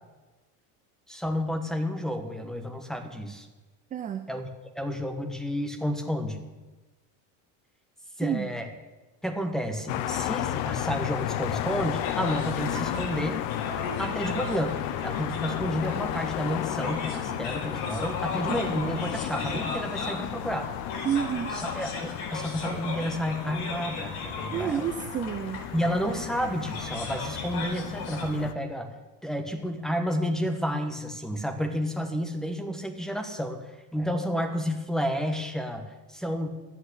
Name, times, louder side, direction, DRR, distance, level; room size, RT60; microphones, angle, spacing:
voice 1, 1.1-3.5 4.3-4.5 4.7-6.4 8.2-8.7 9.2-13.4 14.0-20.7 21.6-24.9 25.7-28.9 29.2-36.5, equal, ahead, 5 dB, 1.3 m, -31 dB
voice 2, 3.9-4.2 8.2-8.5 18.5-18.6 21.0-21.5 24.5-25.6, right 9 dB, 20° right, 8 dB, 0.4 m, -29 dB
sound 1, 9.9-28.5, left 12 dB, 65° left, 0.9 m, -33 dB
sound 2, 11.9-28.2, left 3 dB, 85° left, 4.6 m, -38 dB
sound 3, 12.6-19.8, right 5 dB, 35° right, 2.6 m, -48 dB
13.0 x 8.7 x 8.2 m, 1.2 s
cardioid pair, 155°, 43 cm